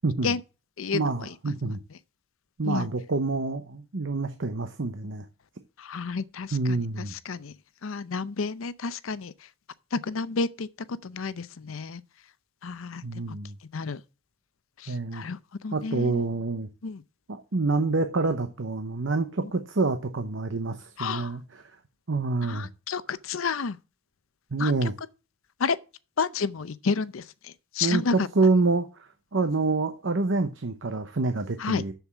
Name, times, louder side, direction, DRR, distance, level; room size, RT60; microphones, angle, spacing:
voice 1, 0.0-0.3 0.9-1.8 2.6-5.2 6.5-7.1 13.0-13.5 14.9-15.2 15.7-16.7 17.3-21.4 22.1-22.7 24.5-24.9 27.8-31.9, right 3 dB, 70° right, 0.8 m, -27 dB
voice 2, 0.8-1.3 1.6-1.7 2.6-2.9 5.8-7.5 7.8-9.3 9.9-10.7 11.0-12.0 12.6-13.0 13.3-13.4 13.7-14.0 14.8-16.3 16.8-17.0 21.0-21.3 22.4-23.8 24.6-24.7 25.6-25.8 26.2-28.3 31.6-31.8, left 4 dB, 85° left, 0.6 m, -31 dB
7.2 x 7.0 x 5.9 m
head